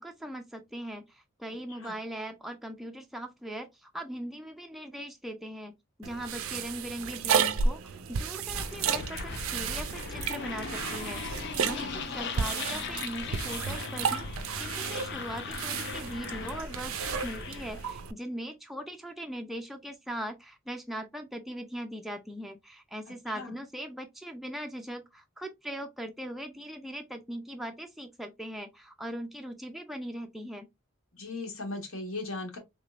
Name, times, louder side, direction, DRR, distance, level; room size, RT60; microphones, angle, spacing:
voice 1, 0.0-5.7 6.0-30.7, equal, ahead, 0.4 m, -40 dB
sound 1, 6.0-18.1, right 6 dB, 80° right, 0.5 m, -33 dB
sound 2, 8.5-17.9, left 4 dB, 55° left, 0.5 m, -38 dB
voice 2, 11.5-12.1 23.3-23.5 31.1-32.6, left 2 dB, 80° left, 1.3 m, -38 dB
3.6 x 3.1 x 2.4 m
head